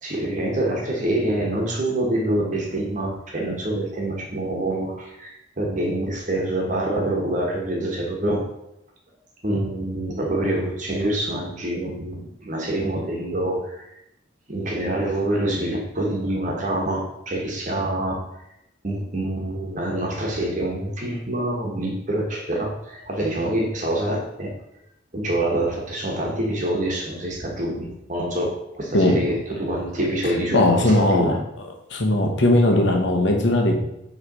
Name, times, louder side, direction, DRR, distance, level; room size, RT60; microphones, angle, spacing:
voice 1, 0.0-8.4 9.4-13.9 14.5-18.2 18.8-24.5 25.1-31.4, right 1 dB, 40° right, -1 dB, 1.2 m, -26 dB
voice 2, 30.5-31.3 31.9-33.7, left 1 dB, 70° left, 2 dB, 1.1 m, -18 dB
5.7 x 3.3 x 5.3 m, 0.81 s
head